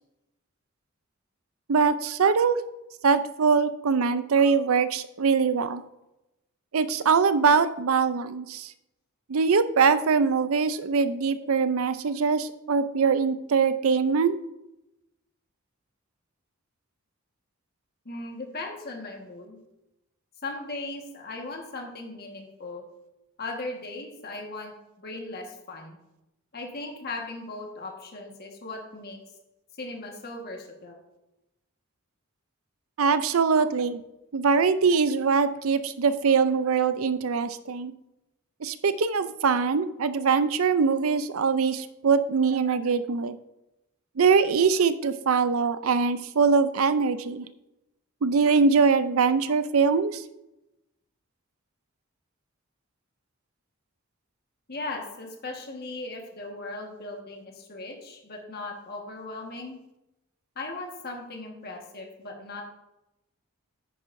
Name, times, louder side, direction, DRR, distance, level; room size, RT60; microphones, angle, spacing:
voice 1, 1.7-2.6 3.0-5.8 6.7-8.7 9.3-14.4 33.0-34.0 34.3-37.9 38.6-43.4 44.2-47.5 48.2-50.2, right 5 dB, 65° right, 12 dB, 0.5 m, -23 dB
voice 2, 18.0-19.6 20.4-22.8 23.4-26.0 26.5-29.2 29.8-31.0 54.7-59.8 60.5-62.6, left 2 dB, 45° left, 1 dB, 1.5 m, -38 dB
9.9 x 9.2 x 2.6 m, 0.93 s
head